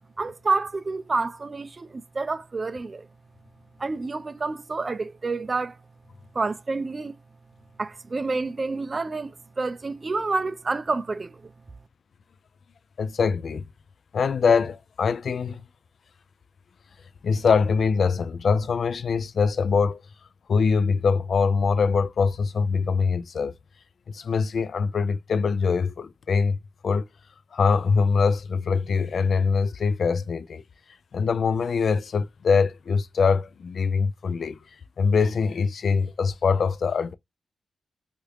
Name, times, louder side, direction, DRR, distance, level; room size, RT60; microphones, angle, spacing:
voice 1, 0.2-3.1 3.8-5.8 6.3-7.2 7.8-11.5, right 3 dB, 35° right, 0.3 m, -28 dB
voice 2, 13.0-13.6 14.1-15.6 17.2-20.0 20.5-23.5 24.1-26.6 26.8-27.0 27.5-30.6 31.1-34.6 35.0-37.1, left 5 dB, 65° left, 0.3 m, -23 dB
2.9 x 2.4 x 3.2 m
cardioid pair, 80°, 0 cm